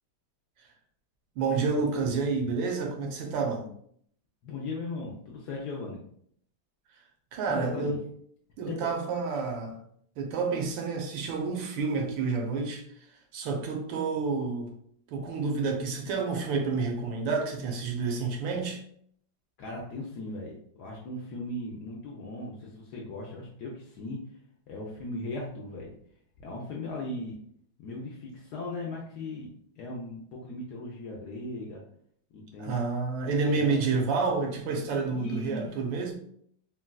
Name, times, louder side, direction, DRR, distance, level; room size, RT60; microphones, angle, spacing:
voice 1, 1.4-3.7 7.3-8.0 8.6-9.8 10.2-12.8 13.3-14.7 15.1-18.8 32.6-36.2, right 4 dB, 75° right, 3 dB, 1.3 m, -29 dB
voice 2, 4.4-6.0 7.5-8.0 8.7-8.8 19.6-24.2 24.7-25.9 26.4-27.4 27.8-31.8 32.3-32.8 33.5-34.1 35.1-35.7, left 2 dB, 75° left, -2 dB, 0.9 m, -38 dB
4.0 x 2.2 x 2.2 m, 0.65 s
omnidirectional pair, 2.2 m